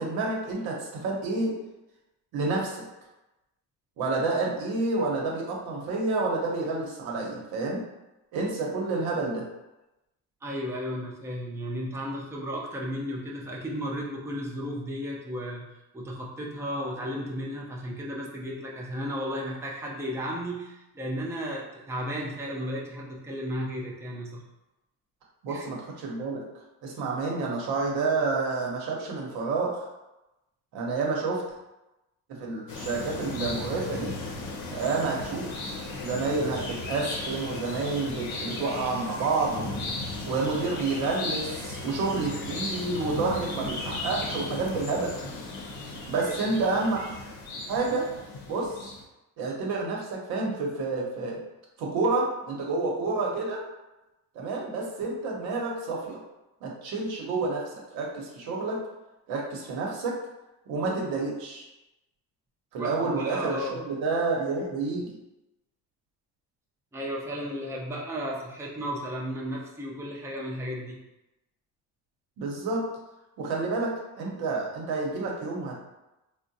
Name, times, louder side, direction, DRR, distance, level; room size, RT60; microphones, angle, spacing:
voice 1, 0.0-1.5 2.3-2.8 4.0-7.8 8.3-9.4 25.4-26.4 26.8-29.8 30.7-31.4 32.3-34.1 34.7-35.6 36.0-39.8 40.2-45.1 46.1-47.1 47.7-48.1 48.5-48.9 49.4-51.4 51.8-53.6 54.3-56.2 56.6-58.8 59.3-60.2 60.7-61.6 62.7-65.1 72.4-72.9 73.4-75.8, right 3 dB, 85° right, -2 dB, 0.9 m, -29 dB
voice 2, 10.4-15.7 15.9-24.4 25.5-25.7 46.2-46.5 62.8-63.8 66.9-71.0, equal, 10° right, -3 dB, 0.5 m, -34 dB
sound 1, 32.7-49.0, left 2 dB, 80° left, 0.7 m, -36 dB
3.7 x 2.1 x 2.6 m, 0.97 s
cardioid pair, 110°, 36 cm